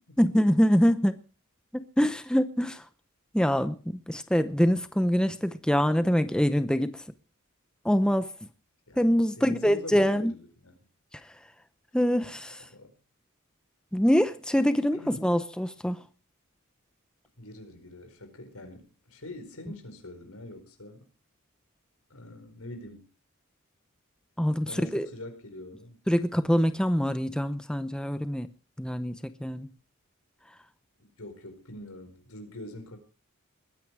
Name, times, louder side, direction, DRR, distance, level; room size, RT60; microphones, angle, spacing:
voice 1, 0.2-1.2 1.7-2.8 3.3-3.8 4.1-7.0 7.8-8.3 9.0-10.3 11.9-12.6 13.9-16.0 24.4-25.1 26.1-28.5 28.8-29.1 29.4-29.7, equal, 5° left, 0.7 m, -24 dB
voice 2, 8.9-10.7 12.7-12.9 14.9-15.3 17.4-21.1 22.1-23.1 24.7-26.0 31.0-33.0, left 1 dB, 90° left, 4.9 m, -44 dB
21.5 x 9.6 x 4.7 m
head